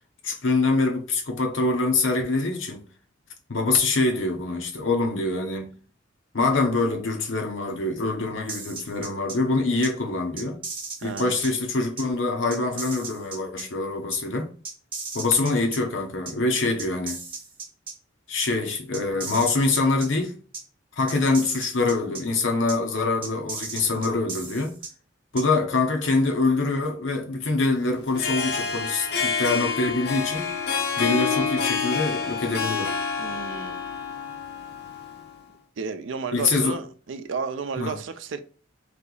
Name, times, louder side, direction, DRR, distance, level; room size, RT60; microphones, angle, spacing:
voice 1, 0.2-2.9 3.5-5.7 6.3-10.6 11.0-14.5 15.1-17.2 18.3-20.4 21.0-24.7 25.3-30.5 31.0-33.0 36.3-36.8 37.8-37.9, left 3 dB, 80° left, 0.9 m, -24 dB
sound 1, 8.5-9.3 9.8-9.9 10.4-11.5 12.0-12.1 12.5-13.6 14.1-14.2 14.6-15.8 16.3-16.4 16.8-17.9 18.4-18.5 18.9-20.1 20.5-20.6 21.1-22.2 22.7-22.8 23.2-24.9 25.4-25.5, right 4 dB, 30° right, 1.4 m, -35 dB
voice 2, 11.0-11.4 33.2-33.8 35.8-38.4, right 5 dB, 85° right, 0.5 m, -32 dB
Harp, 28.0-35.4, left 6 dB, 60° left, 0.7 m, -28 dB
3.2 x 2.9 x 3.9 m
head